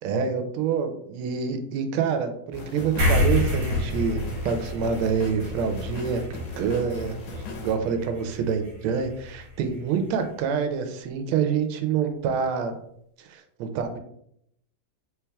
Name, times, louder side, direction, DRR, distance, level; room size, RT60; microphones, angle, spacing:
voice 1, 0.0-7.1 7.6-12.7 13.2-14.0, right 6 dB, 90° right, 7 dB, 1.4 m, -27 dB
sound 1, 2.5-7.8, left 3 dB, 85° left, 1.6 m, -38 dB
sound 2, 3.0-9.8, left 1 dB, 50° right, 1.2 m, -29 dB
4.5 x 3.3 x 2.2 m, 0.72 s
omnidirectional pair, 2.3 m